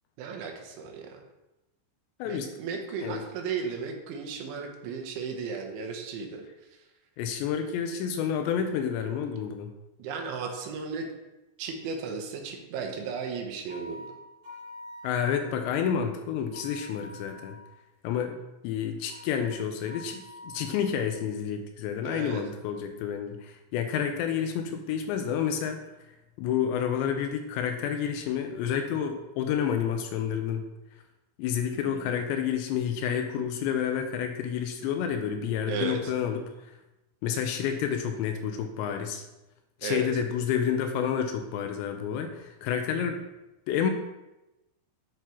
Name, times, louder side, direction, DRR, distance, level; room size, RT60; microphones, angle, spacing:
voice 1, 0.2-1.2 2.3-6.5 10.0-11.1 11.6-14.1 22.1-22.4 31.7-32.1 35.7-36.1 39.8-40.1, right 5 dB, 85° right, 3 dB, 3.4 m, -35 dB
voice 2, 7.2-9.7 15.0-17.6 18.0-18.4 18.6-25.8 26.4-30.6 31.4-36.5 37.2-39.2 39.8-43.2 43.7-43.9, left 8 dB, 80° left, 5 dB, 2.7 m, -29 dB
sound 1, 13.7-15.8 16.5-17.8 19.1-21.3, left 1 dB, 55° right, 3.4 m, -47 dB
8.8 x 5.9 x 3.0 m, 0.99 s
omnidirectional pair, 5.3 m